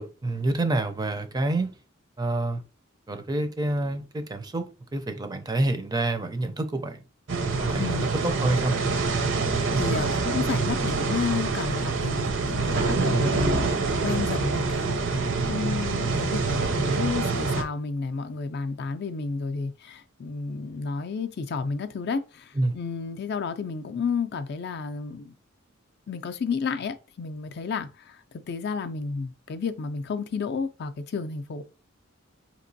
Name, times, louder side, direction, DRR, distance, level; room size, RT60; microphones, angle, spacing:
voice 1, 0.0-1.7 2.2-2.6 3.1-7.0 7.6-8.7 13.1-13.3 22.6-22.7, right 2 dB, 20° right, 0.4 m, -27 dB
sound 1, 7.3-17.6, right 3 dB, 60° right, 0.6 m, -26 dB
voice 2, 7.8-8.1 9.8-25.3 26.1-31.6, left 5 dB, 50° left, 0.4 m, -31 dB
5.1 x 2.9 x 2.7 m
head